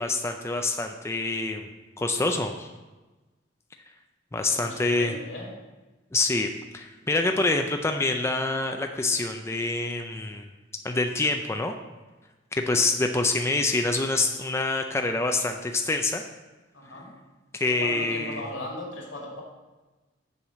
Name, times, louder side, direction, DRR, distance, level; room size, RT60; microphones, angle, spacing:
voice 1, 0.0-1.7 2.0-2.7 4.3-5.1 6.1-10.5 10.8-11.7 12.5-16.2 17.5-18.5, left 2 dB, 15° left, 4 dB, 0.4 m, -26 dB
voice 2, 4.4-5.5 12.7-12.8 16.7-17.1 17.7-19.4, left 1 dB, 85° left, -2 dB, 2.5 m, -38 dB
7.1 x 4.7 x 6.7 m, 1.2 s
head